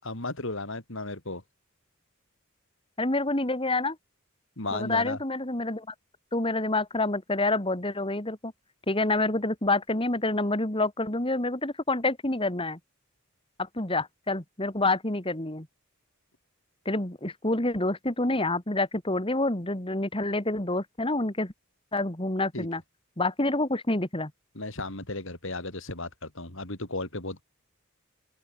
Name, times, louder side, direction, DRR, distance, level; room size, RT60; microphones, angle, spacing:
voice 1, 0.0-1.4 4.6-5.2 22.5-22.7 24.5-27.4, left 2 dB, 60° left, 4.7 m, -34 dB
voice 2, 3.0-4.0 4.7-5.9 6.3-8.5 8.9-12.8 13.6-15.7 16.8-21.5 21.9-22.8 23.2-24.3, left 2 dB, 25° left, 2.7 m, -27 dB
open air
head